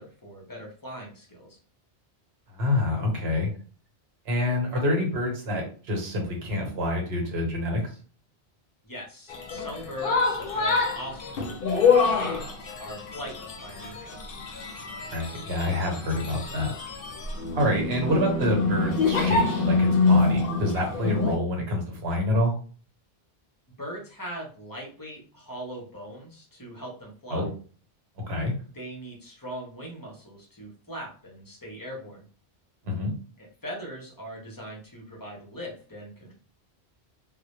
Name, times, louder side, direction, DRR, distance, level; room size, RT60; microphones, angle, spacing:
voice 1, 0.0-1.6 8.8-14.2 20.9-21.1 23.8-27.4 28.7-32.2 33.4-36.3, equal, 25° left, -2 dB, 0.5 m, -40 dB
voice 2, 2.5-3.5 4.3-7.9 15.0-16.7 17.5-22.5 27.3-27.5 28.3-28.5 32.8-33.1, left 1 dB, 70° right, 1 dB, 1.0 m, -27 dB
sound 1, 9.3-21.4, left 4 dB, 65° left, 0.7 m, -26 dB
2.1 x 2.1 x 2.9 m, 0.40 s
omnidirectional pair, 1.1 m